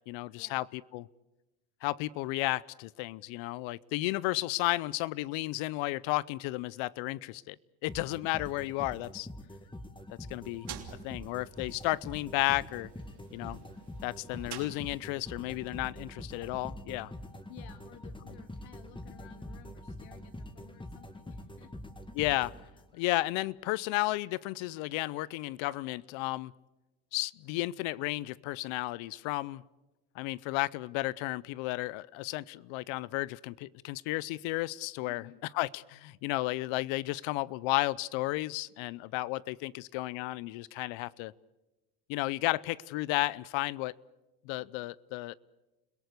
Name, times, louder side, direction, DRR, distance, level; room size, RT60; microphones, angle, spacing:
voice 1, 0.1-1.1 1.8-7.6 7.8-9.3 10.3-10.7 11.0-12.9 13.3-13.6 14.0-17.1 22.1-22.5 22.9-26.5 27.1-29.6 30.2-35.2 35.5-41.3 42.1-43.9 44.5-45.3, left 19 dB, 65° left, 0.8 m, -33 dB
sound 1, 7.9-23.1, left 1 dB, 10° left, 1.9 m, -45 dB
sound 2, 10.3-15.3, right 9 dB, 50° right, 3.2 m, -49 dB
voice 2, 17.5-21.7 35.0-35.4, left 11 dB, 90° left, 2.8 m, -55 dB
29.5 x 17.5 x 8.1 m
supercardioid pair, 95°, 49 cm